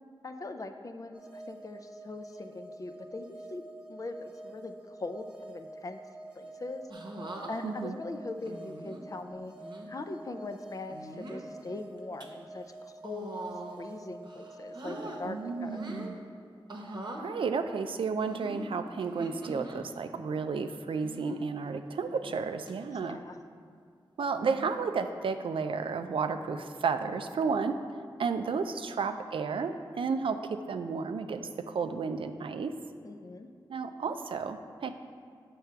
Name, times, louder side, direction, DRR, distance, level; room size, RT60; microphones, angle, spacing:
voice 1, 0.2-3.6 3.9-6.0 6.3-6.8 7.5-9.5 9.9-15.8 22.9-23.4 33.0-33.5, left 2 dB, 40° left, 7 dB, 0.4 m, -41 dB
sound 1, 1.1-16.1, right 2 dB, 10° right, 0.7 m, -48 dB
sound 2, 6.9-7.5 8.5-9.0 9.6-9.9 10.9-11.4 12.0-12.2 13.0-13.9 14.2-15.2 15.6-16.1 16.7-17.2 18.2-19.8 21.0-21.4 22.0-22.4 22.7-22.8 24.3-24.7 25.8-26.1, right 1 dB, 55° right, 0.9 m, -42 dB
voice 2, 7.6-8.0 15.3-16.2 17.2-23.2 24.2-27.8 28.2-32.7 33.7-34.9, right 5 dB, 75° right, 8 dB, 0.4 m, -32 dB
7.3 x 3.4 x 5.7 m, 2.2 s
wide cardioid pair, 75°, 9 cm